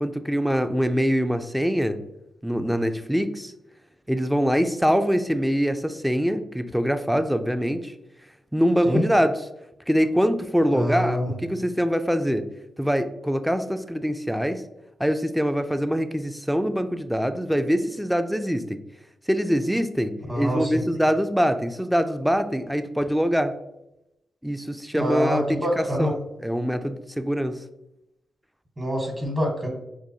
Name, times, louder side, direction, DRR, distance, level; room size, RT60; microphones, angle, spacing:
voice 1, 0.0-2.0 2.4-3.5 4.1-7.9 8.5-9.3 9.9-12.5 12.8-14.6 15.0-18.8 19.3-23.5 24.4-27.6, equal, 5° right, 9 dB, 0.3 m, -24 dB
voice 2, 10.7-11.3 20.3-20.8 24.9-26.1 28.8-29.7, equal, 30° right, 0 dB, 1.1 m, -25 dB
4.7 x 2.2 x 2.7 m, 0.89 s
cardioid pair, 55°, 0 cm